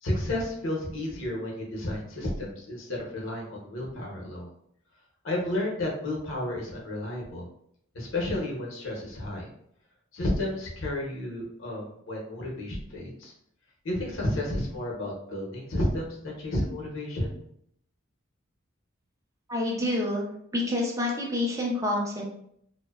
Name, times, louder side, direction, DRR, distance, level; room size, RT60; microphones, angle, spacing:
voice 1, 0.0-4.5 5.2-7.5 7.9-9.5 10.1-13.3 13.8-17.3, left 1 dB, 70° left, -2 dB, 0.8 m, -32 dB
voice 2, 19.5-20.3 20.5-22.2, left 1 dB, 15° right, -2 dB, 0.4 m, -27 dB
2.6 x 2.1 x 2.3 m, 0.70 s
head